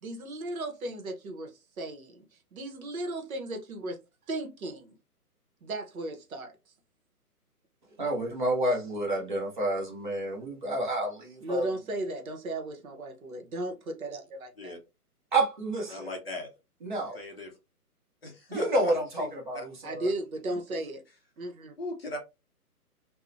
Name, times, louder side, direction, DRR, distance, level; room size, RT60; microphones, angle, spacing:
voice 1, 0.0-2.2 2.5-4.0 4.3-5.0 5.6-6.5 11.4-14.7 19.8-21.0 21.4-21.7, right 1 dB, 65° right, 0.8 m, -35 dB
voice 2, 8.0-11.7 15.3-16.1 16.8-17.2 18.5-20.1, right 1 dB, 35° right, 0.5 m, -29 dB
voice 3, 15.9-16.5 17.1-17.5 18.2-18.9 19.2-19.6 21.8-22.2, left 2 dB, 40° left, 0.5 m, -38 dB
2.7 x 2.0 x 2.4 m
hypercardioid pair, 155°, 47 cm